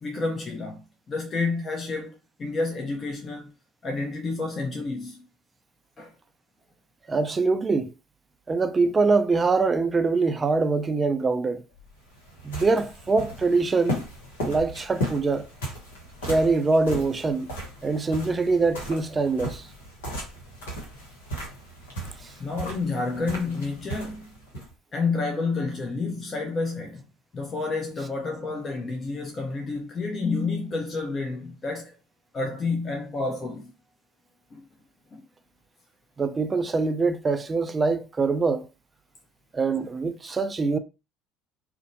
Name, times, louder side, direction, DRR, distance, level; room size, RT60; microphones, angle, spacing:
voice 1, 0.0-3.5 3.8-5.2 6.0-6.1 22.4-24.3 24.9-27.0 27.3-31.9 32.3-33.7 34.5-34.6 35.1-35.2, left 3 dB, 35° left, 0.6 m, -29 dB
voice 2, 7.1-7.9 8.5-11.6 12.4-14.0 14.4-15.5 16.3-17.5 17.8-19.7 22.2-22.3 36.2-38.7 39.5-40.8, right 3 dB, 25° right, 0.3 m, -24 dB
sound 1, 11.7-24.7, equal, 80° left, 1.0 m, -36 dB
2.6 x 2.1 x 2.7 m
hypercardioid pair, 65°, 0 cm